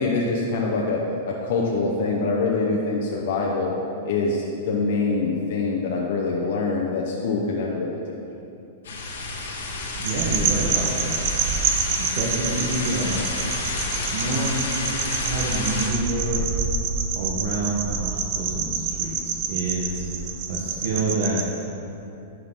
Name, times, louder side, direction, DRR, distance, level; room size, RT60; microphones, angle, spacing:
voice 1, 0.0-3.7 4.0-8.0, left 3 dB, 60° left, -2 dB, 0.8 m, -24 dB
sound 1, 8.8-15.9, left 2 dB, 85° left, 1.2 m, -30 dB
sound 2, 10.0-21.4, right 5 dB, 45° right, 0.7 m, -27 dB
voice 2, 10.0-11.1 11.9-13.2 14.1-14.6 15.0-16.5 17.1-20.0 20.5-21.4, right 2 dB, 60° right, -5 dB, 1.1 m, -28 dB
11.0 x 4.5 x 3.7 m, 2.8 s
hypercardioid pair, 145°, 0 cm